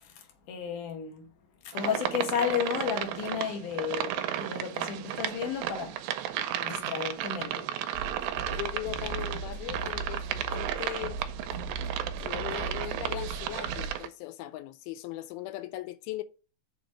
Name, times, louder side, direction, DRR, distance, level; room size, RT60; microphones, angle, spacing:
voice 1, 0.5-1.3 1.6-6.0 6.6-7.7, left 8 dB, 65° left, 2.6 m, -32 dB
sound 1, 1.7-14.1, right 11 dB, 80° right, 2.3 m, -34 dB
sound 2, 7.9-14.0, right 3 dB, 45° left, 1.3 m, -38 dB
voice 2, 8.5-11.2 12.2-16.2, left 15 dB, 90° left, 2.5 m, -39 dB
6.7 x 4.0 x 6.1 m
omnidirectional pair, 4.3 m